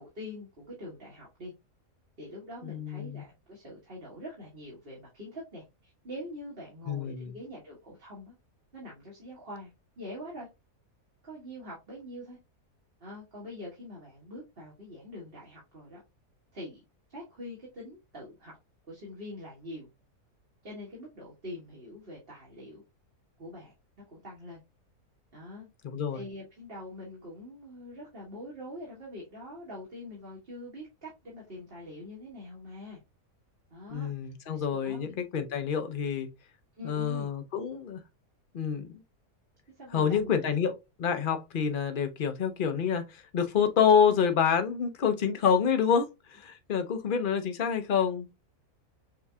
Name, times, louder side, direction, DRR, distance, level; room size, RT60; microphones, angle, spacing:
voice 1, 0.0-1.5 2.2-8.3 8.7-9.7 10.0-10.5 11.2-12.4 13.0-16.0 16.5-16.8 17.1-18.6 18.9-19.9 20.6-22.8 23.4-23.7 24.1-24.6 25.3-25.7 26.1-33.0 33.7-35.1 36.8-37.3 39.8-40.3, left 1 dB, 40° right, 1.8 m, -44 dB
voice 2, 2.6-3.2 6.9-7.3 25.8-26.2 33.9-36.3 36.8-38.0 38.5-39.0 39.9-46.1 46.4-48.3, left 7 dB, 50° left, 0.7 m, -27 dB
6.7 x 2.7 x 2.3 m
omnidirectional pair, 1.6 m